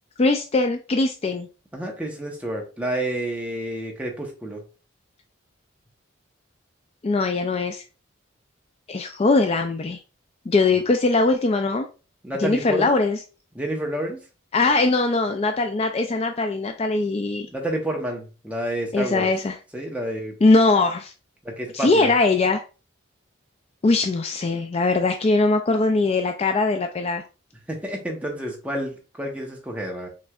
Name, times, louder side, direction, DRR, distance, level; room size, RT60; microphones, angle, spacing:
voice 1, 0.2-1.5 7.0-7.8 8.9-10.0 10.5-11.9 12.4-13.2 14.5-17.5 18.9-19.6 20.4-21.1 21.7-22.6 23.8-27.2, left 3 dB, 30° left, 6 dB, 0.3 m, -21 dB
voice 2, 1.7-4.6 12.2-13.0 13.5-14.2 17.5-19.3 19.7-20.3 21.4-22.1 27.7-30.1, right 1 dB, 5° right, 0 dB, 0.9 m, -29 dB
6.0 x 3.2 x 2.4 m, 0.33 s
head